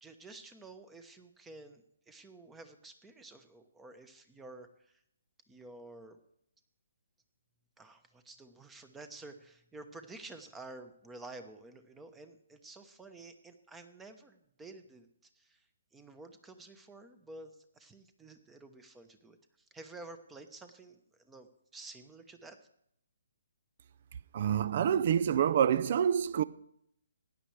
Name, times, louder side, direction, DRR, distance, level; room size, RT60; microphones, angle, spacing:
voice 1, 0.0-5.0 5.5-6.2 7.8-15.1 15.3-22.6, right 2 dB, 10° right, 1.0 m, -51 dB
voice 2, 24.3-26.4, right 9 dB, 45° right, 0.4 m, -27 dB
16.5 x 10.0 x 3.3 m
figure-of-eight pair, 140°, 0 cm